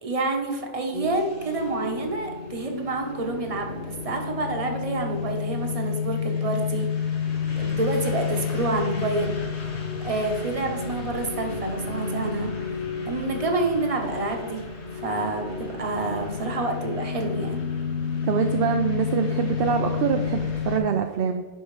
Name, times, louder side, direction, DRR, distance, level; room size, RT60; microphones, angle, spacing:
voice 1, 0.0-6.9 7.6-9.4 10.0-14.6 14.9-17.6, right 3 dB, 35° right, 2 dB, 1.0 m, -28 dB
sound 1, 0.9-20.8, left 6 dB, 75° left, 1.4 m, -30 dB
voice 2, 18.3-21.5, right 7 dB, 65° right, 5 dB, 0.7 m, -25 dB
11.0 x 4.3 x 3.2 m, 1.4 s
omnidirectional pair, 1.2 m